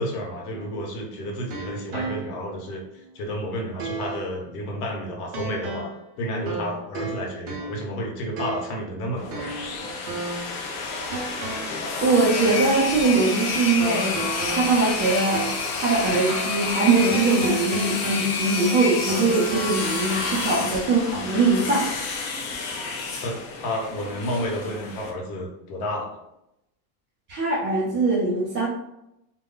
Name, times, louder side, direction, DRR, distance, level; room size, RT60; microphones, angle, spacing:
voice 1, 0.0-5.9 6.2-9.5 23.2-26.2, equal, 65° left, 1 dB, 1.0 m, -31 dB
sound 1, 0.5-2.6 3.0-3.1 3.8-4.3 5.3-6.1 6.5-8.0 8.4-8.8 9.3-10.6 11.1-11.9 12.4-12.9 13.8-15.8 16.1-16.5 17.1-18.6 19.1-19.7, right 3 dB, 50° right, 0.8 m, -34 dB
sound 2, 9.2-25.1, left 4 dB, 35° left, 0.5 m, -29 dB
voice 2, 12.0-14.2 14.5-15.5 15.7-21.9 27.3-28.7, right 3 dB, 25° right, -3 dB, 0.4 m, -22 dB
2.2 x 2.2 x 3.7 m, 0.86 s
supercardioid pair, 130°, 49 cm